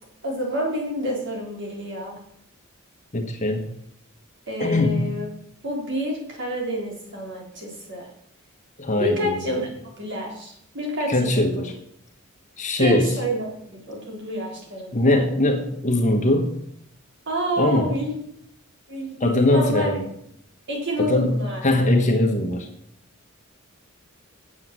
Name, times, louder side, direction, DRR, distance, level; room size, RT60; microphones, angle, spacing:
voice 1, 0.2-2.2 4.5-5.3 5.6-8.1 9.0-9.7 10.0-11.4 12.8-15.2 17.3-18.2 18.9-19.9 20.7-21.6, equal, 60° right, -1 dB, 3.7 m, -28 dB
voice 2, 3.1-3.7 4.6-5.1 8.8-9.5 11.1-11.7 12.6-13.2 14.9-16.5 17.6-17.9 19.2-20.1 21.0-21.4 21.6-22.7, left 1 dB, 35° left, 3 dB, 1.3 m, -21 dB
8.7 x 8.0 x 7.5 m, 0.73 s
head